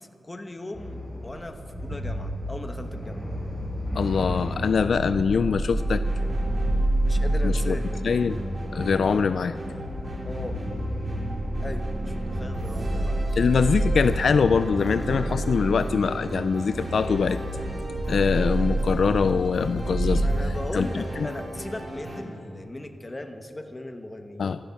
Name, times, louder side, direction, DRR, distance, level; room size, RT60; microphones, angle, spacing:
voice 1, 0.2-3.2 7.0-7.8 10.2-10.6 11.6-13.2 20.2-24.6, left 1 dB, 20° left, 6 dB, 1.1 m, -38 dB
sound 1, 0.7-20.3, right 1 dB, 15° right, 4.5 m, -29 dB
voice 2, 3.9-6.0 7.4-7.8 8.0-8.4 8.7-9.5 13.4-17.4 18.1-20.3 20.7-21.3 24.4-24.6, left 5 dB, 65° left, 12 dB, 0.3 m, -23 dB
sound 2, 5.8-22.2, right 1 dB, 35° right, 2.6 m, -35 dB
26.0 x 9.5 x 5.8 m, 2.8 s
wide cardioid pair, 135°, 0 cm